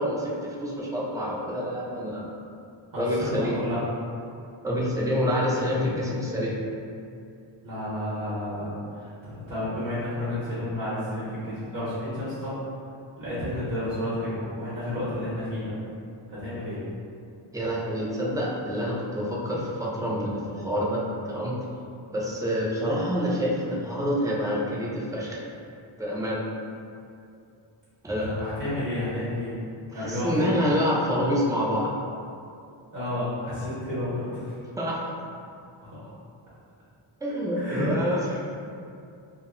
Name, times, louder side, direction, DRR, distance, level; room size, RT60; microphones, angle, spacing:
voice 1, 0.0-2.3 3.0-3.6 4.6-6.6 17.5-21.6 22.1-25.4 26.0-26.4 28.0-28.3 29.9-31.9 34.8-35.1 37.2-38.6, equal, 10° right, -5 dB, 0.3 m, -27 dB
voice 2, 2.9-3.8 7.6-8.7 9.2-12.5 13.2-15.7 16.3-16.8 28.2-29.5 29.9-30.4 32.9-34.4 35.8-36.0 37.6-37.9, left 1 dB, 40° right, -11 dB, 1.0 m, -31 dB
2.0 x 2.0 x 3.6 m, 2.4 s
cardioid pair, 110°, 47 cm